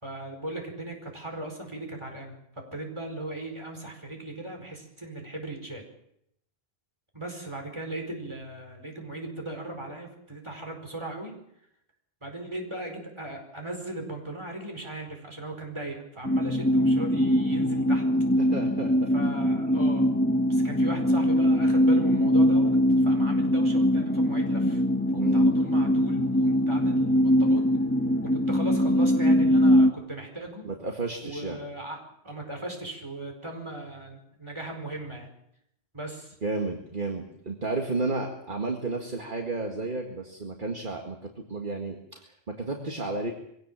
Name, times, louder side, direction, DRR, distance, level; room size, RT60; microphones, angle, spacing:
voice 1, 0.0-2.4 2.7-5.8 7.1-11.3 12.2-18.0 19.1-20.1 20.5-24.8 25.1-27.7 28.2-30.7 31.2-32.0 32.2-35.3 35.9-36.4, right 1 dB, 25° right, 3 dB, 4.9 m, -37 dB
sound 1, 16.2-29.9, equal, 10° left, 1.4 m, -22 dB
voice 2, 18.4-19.1 25.2-25.5 30.6-31.6 36.4-43.3, right 3 dB, 50° right, 2 dB, 2.1 m, -32 dB
23.0 x 17.0 x 7.4 m, 0.76 s
omnidirectional pair, 1.1 m